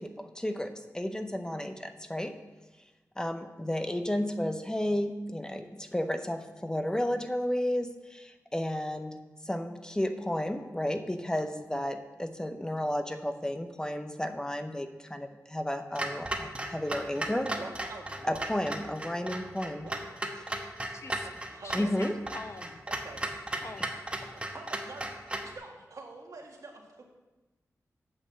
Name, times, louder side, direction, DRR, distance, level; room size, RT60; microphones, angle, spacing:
voice 1, 0.0-2.3 3.2-9.2 9.4-17.6 18.2-19.9 20.4-20.6 21.7-22.1, left 1 dB, 10° left, 7 dB, 0.7 m, -32 dB
Clock, 16.0-25.5, right 1 dB, 20° right, 1.1 m, -36 dB
voice 2, 17.6-18.5 19.6-20.0 21.2-22.1 22.9-23.2 24.5-27.0, right 3 dB, 75° right, 0 dB, 2.0 m, -46 dB
voice 3, 20.9-21.3 21.6-22.8 23.6-24.0, left 3 dB, 50° left, 7 dB, 0.8 m, -44 dB
8.7 x 6.5 x 7.4 m, 1.2 s
wide cardioid pair, 100°, 6 cm